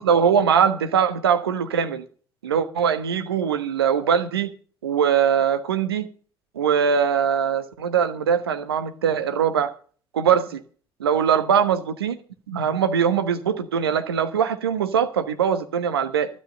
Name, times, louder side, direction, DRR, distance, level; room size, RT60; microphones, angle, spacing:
voice 1, 0.0-2.0 2.4-4.5 4.8-6.1 6.5-9.7 10.1-10.6 11.0-12.2 12.5-16.3, right 7 dB, 85° right, 1.3 m, -21 dB
13.0 x 11.5 x 5.3 m
figure-of-eight pair, 55°, 13 cm